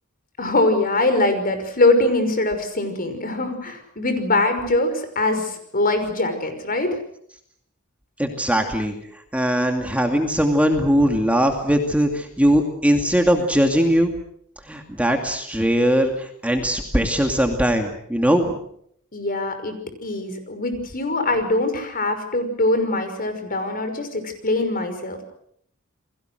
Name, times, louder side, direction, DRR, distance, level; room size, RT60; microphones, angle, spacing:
voice 1, 0.4-7.0 19.1-19.7 20.0-25.2, left 2 dB, 45° left, 8 dB, 5.7 m, -22 dB
voice 2, 8.2-8.9 9.3-14.1 14.7-18.6, equal, 5° right, 3 dB, 2.4 m, -20 dB
29.5 x 22.0 x 6.5 m, 0.69 s
head